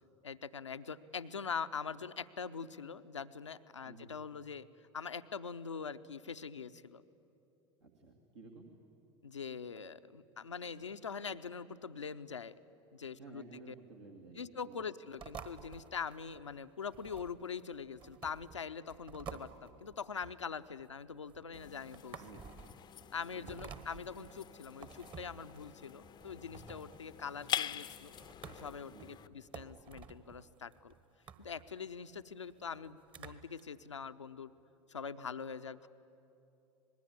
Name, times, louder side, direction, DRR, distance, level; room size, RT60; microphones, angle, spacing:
voice 1, 0.2-7.0 9.2-12.5 12.9-13.7 14.3-22.2 23.1-28.1 28.5-30.9 31.4-34.5 34.9-35.9, left 6 dB, 80° left, 12 dB, 0.7 m, -43 dB
voice 2, 7.8-8.7 13.2-14.9 22.2-22.6 23.3-23.5 28.9-29.2, right 3 dB, 75° right, 0 dB, 2.2 m, -54 dB
sound 1, 15.2-33.6, right 6 dB, 35° right, 1.5 m, -53 dB
sound 2, 21.5-29.3, left 10 dB, 30° left, 0.6 m, -44 dB
25.5 x 20.5 x 9.9 m, 2.9 s
figure-of-eight pair, 75°, 15 cm